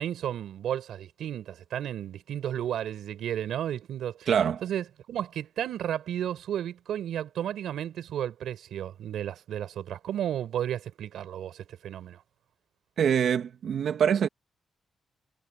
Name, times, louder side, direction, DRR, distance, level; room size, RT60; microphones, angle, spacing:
voice 1, 0.0-4.3 4.6-12.2, right 10 dB, 85° right, 5.1 m, -33 dB
voice 2, 4.3-4.6 13.0-14.3, right 8 dB, 65° right, 2.2 m, -24 dB
wide cardioid pair, 150°, 0 cm